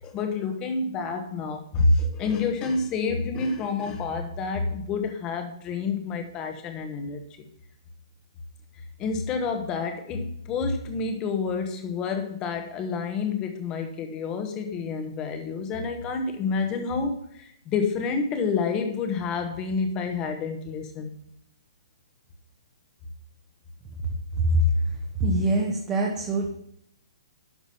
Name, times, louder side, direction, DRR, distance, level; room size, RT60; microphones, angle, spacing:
voice 1, 0.0-7.2 9.0-21.2, left 4 dB, 25° left, 6 dB, 1.3 m, -28 dB
voice 2, 25.2-26.5, right 2 dB, 20° right, -1 dB, 1.3 m, -23 dB
11.5 x 3.9 x 5.5 m, 0.72 s
hypercardioid pair, 145°, 3 cm